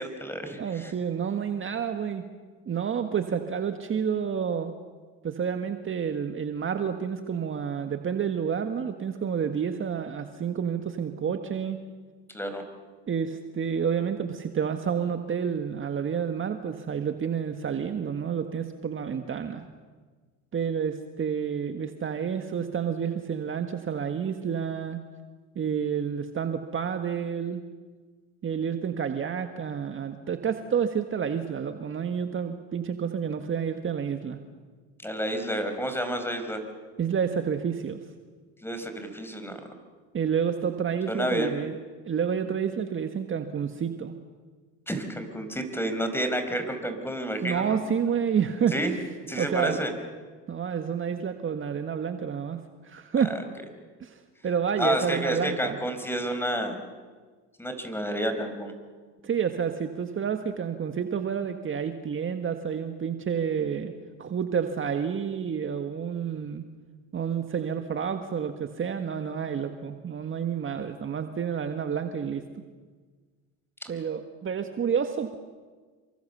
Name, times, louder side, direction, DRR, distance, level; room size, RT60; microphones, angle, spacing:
voice 1, 0.0-0.9 12.3-12.6 35.0-36.6 38.6-39.6 41.1-41.5 44.9-47.8 48.7-48.9 49.3-49.9 53.3-53.4 54.8-56.8 57.6-58.7, equal, 5° left, 7 dB, 5.2 m, -30 dB
voice 2, 0.6-2.3 2.7-4.7 5.2-11.8 13.1-19.6 20.5-25.0 25.6-27.7 28.4-34.4 37.0-38.1 40.1-41.8 42.1-44.2 47.4-48.7 49.4-49.8 50.5-53.4 54.0-55.8 59.2-63.9 64.2-66.6 67.1-72.4 73.9-75.4, right 7 dB, 35° right, 7 dB, 1.8 m, -29 dB
29.0 x 24.5 x 7.0 m, 1.4 s
hypercardioid pair, 80°, 36 cm